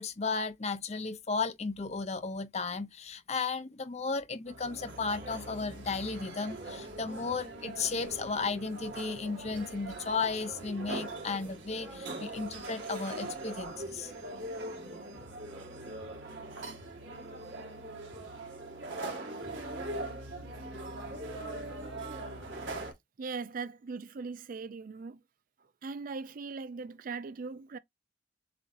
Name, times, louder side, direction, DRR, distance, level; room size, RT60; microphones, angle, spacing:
voice 1, 0.0-14.1, left 4 dB, 35° left, 0.7 m, -34 dB
sound 1, 4.5-22.9, right 2 dB, 85° right, 1.8 m, -41 dB
voice 2, 23.2-25.2 25.8-27.8, right 4 dB, 50° right, 0.4 m, -39 dB
7.5 x 2.7 x 2.6 m
head